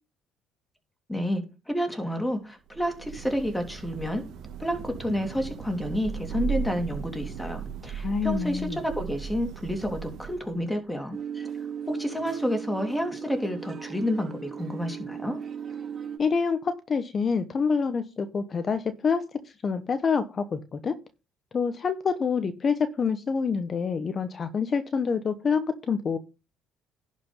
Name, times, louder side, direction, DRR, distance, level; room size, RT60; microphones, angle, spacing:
voice 1, 1.1-4.2 4.6-15.4, equal, 5° left, 3.2 m, -30 dB
Thunder / Rain, 2.7-10.7, right 7 dB, 70° right, 1.5 m, -36 dB
voice 2, 7.9-8.8 16.2-21.0 21.5-26.2, left 5 dB, 40° left, 1.1 m, -27 dB
sound 1, 11.1-16.2, right 8 dB, 40° right, 4.1 m, -37 dB
11.0 x 5.2 x 5.4 m
supercardioid pair, 80°, 0 cm